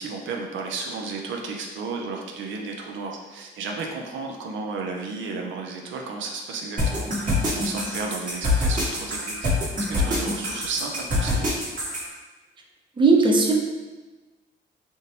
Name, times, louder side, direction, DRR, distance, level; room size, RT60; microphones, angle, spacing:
voice 1, 0.0-11.5, right 4 dB, 75° right, 1 dB, 0.5 m, -33 dB
sound 1, 6.8-12.0, left 2 dB, 40° right, 1.4 m, -24 dB
voice 2, 13.0-13.5, right 3 dB, 25° right, 1 dB, 0.5 m, -17 dB
3.5 x 2.6 x 2.8 m, 1.2 s
cardioid pair, 90°, 20 cm